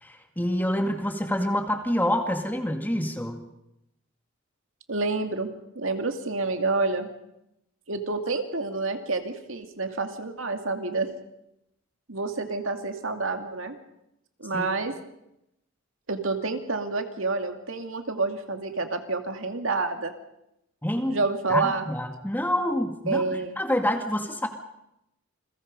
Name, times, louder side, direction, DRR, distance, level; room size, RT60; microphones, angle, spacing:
voice 1, 0.0-3.4 14.5-14.7 20.8-21.2 21.5-24.5, left 1 dB, 10° left, 5 dB, 2.1 m, -27 dB
voice 2, 4.9-5.5 5.8-7.1 7.9-11.1 12.1-13.8 14.4-14.9 16.1-20.1 21.1-21.9 23.1-23.6, right 3 dB, 70° right, 6 dB, 2.4 m, -28 dB
29.0 x 22.0 x 5.3 m, 0.83 s
head